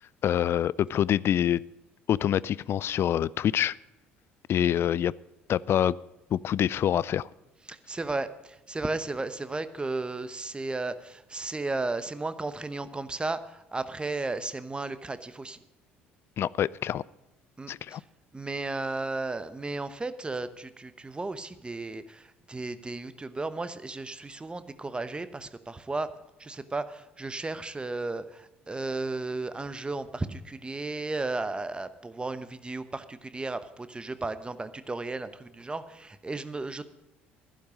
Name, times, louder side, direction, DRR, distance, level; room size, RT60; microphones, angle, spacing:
voice 1, 0.2-1.6 2.1-3.7 4.5-5.1 5.5-6.0 6.3-7.3 16.4-17.0 17.7-18.0, left 10 dB, 45° left, 22 dB, 0.4 m, -26 dB
voice 2, 7.7-15.6 17.6-18.0 18.3-26.1 26.4-36.9, right 3 dB, 15° right, 13 dB, 1.0 m, -34 dB
11.5 x 11.5 x 5.1 m, 0.98 s
figure-of-eight pair, 55°, 6 cm